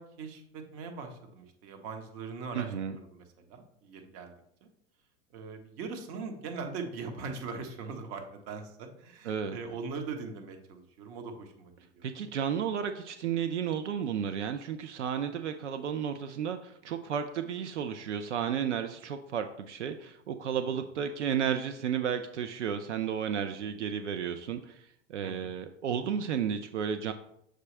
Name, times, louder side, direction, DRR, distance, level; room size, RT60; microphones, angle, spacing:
voice 1, 0.0-4.3 4.6-4.7 5.3-12.1 20.7-20.8 25.2-25.5, right 4 dB, 55° right, 5 dB, 1.4 m, -41 dB
voice 2, 2.5-3.0 9.2-9.6 12.0-27.1, right 8 dB, 80° right, 8 dB, 0.6 m, -33 dB
6.6 x 5.0 x 3.3 m, 0.71 s
hypercardioid pair, 95°, 35 cm